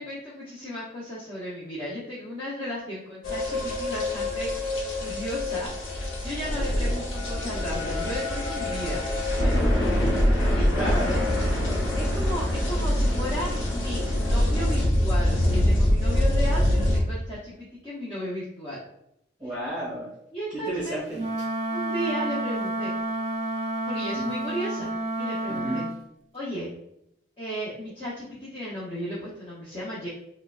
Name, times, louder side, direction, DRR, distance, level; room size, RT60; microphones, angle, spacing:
voice 1, 0.0-5.7 6.2-9.0 9.3-9.5 10.0-11.2 11.9-18.8 20.3-21.0 21.7-22.9 23.9-24.9 25.2-25.8 26.3-26.7 27.4-30.1, equal, 25° left, -8 dB, 0.7 m, -35 dB
sound 1, 3.2-17.0, left 1 dB, 85° left, 0.8 m, -24 dB
voice 2, 10.6-11.1 19.4-20.1 20.5-21.5 24.1-24.2 25.5-25.8, right 1 dB, 5° right, -11 dB, 1.4 m, -32 dB
Wind instrument woodwind instrument, 21.1-26.0, right 1 dB, 35° right, 0.5 m, -30 dB
4.4 x 2.2 x 2.3 m, 0.79 s
head